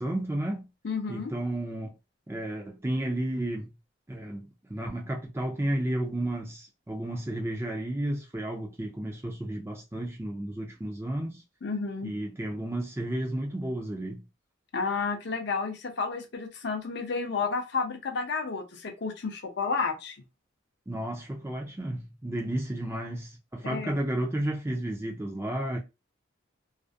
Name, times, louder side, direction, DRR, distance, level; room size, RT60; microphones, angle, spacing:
voice 1, 0.0-0.7 1.1-1.9 2.3-3.7 4.1-11.4 12.0-14.2 20.9-25.8, right 1 dB, 10° right, 0.4 m, -32 dB
voice 2, 0.8-1.3 11.6-12.1 14.7-20.2 23.6-23.9, left 4 dB, 55° left, 0.5 m, -31 dB
2.4 x 2.0 x 2.5 m
head